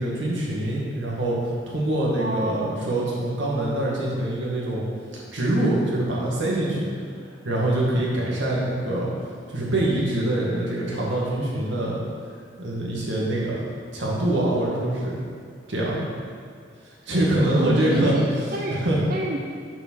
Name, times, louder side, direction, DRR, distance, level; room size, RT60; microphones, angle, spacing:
voice 1, 0.0-1.4 1.7-4.8 5.3-6.9 7.4-9.1 9.5-12.0 12.6-13.6 13.9-15.2 15.7-16.1 17.1-18.1 18.7-19.0, right 1 dB, 80° right, -5 dB, 1.9 m, -24 dB
voice 2, 2.1-2.9 17.4-18.8 19.1-19.4, right 1 dB, 50° right, -1 dB, 0.5 m, -29 dB
6.8 x 5.0 x 6.3 m, 2.1 s
head